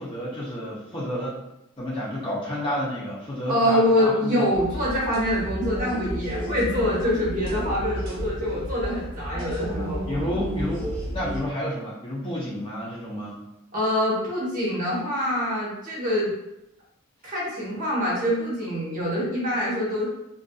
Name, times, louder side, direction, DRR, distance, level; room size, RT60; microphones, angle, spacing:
voice 1, 0.0-1.4 1.8-4.5 10.1-13.4, equal, 25° left, -7 dB, 0.5 m, -30 dB
voice 2, 3.5-10.0 13.7-16.3 17.2-20.0, equal, 40° right, -7 dB, 1.0 m, -25 dB
sound 1, 4.5-11.4, equal, 70° right, 0.8 m, -32 dB
2.5 x 2.5 x 2.2 m, 0.89 s
head